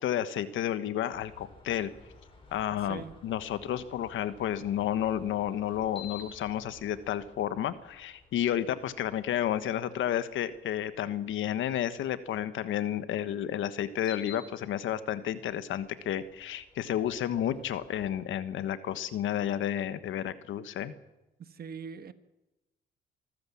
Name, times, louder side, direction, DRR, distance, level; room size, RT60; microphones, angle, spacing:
voice 1, 0.0-1.9 2.5-20.9, left 11 dB, 80° left, 13 dB, 1.4 m, -31 dB
sound 1, 1.1-12.5 13.9-18.1, left 6 dB, 25° left, 7.1 m, -54 dB
voice 2, 2.8-3.1 21.4-22.1, right 6 dB, 50° right, 12 dB, 1.4 m, -41 dB
24.5 x 14.5 x 7.2 m, 0.99 s
cardioid pair, 90°, 20 cm